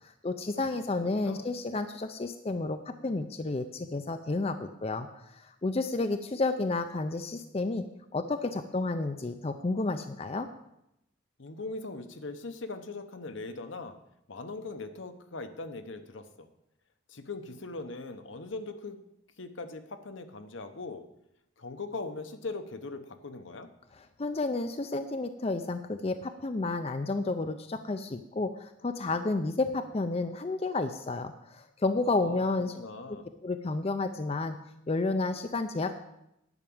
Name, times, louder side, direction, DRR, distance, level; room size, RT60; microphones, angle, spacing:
voice 1, 0.0-7.8 8.1-10.5 24.0-32.7 33.4-34.6 34.9-35.9, left 3 dB, 30° left, 8 dB, 0.5 m, -31 dB
voice 2, 0.9-1.5 11.4-14.0 14.3-16.5 17.1-19.0 19.4-21.0 21.6-23.7 32.2-32.4 32.7-33.3, left 3 dB, 70° left, 8 dB, 0.9 m, -40 dB
10.5 x 5.9 x 8.6 m, 0.83 s
head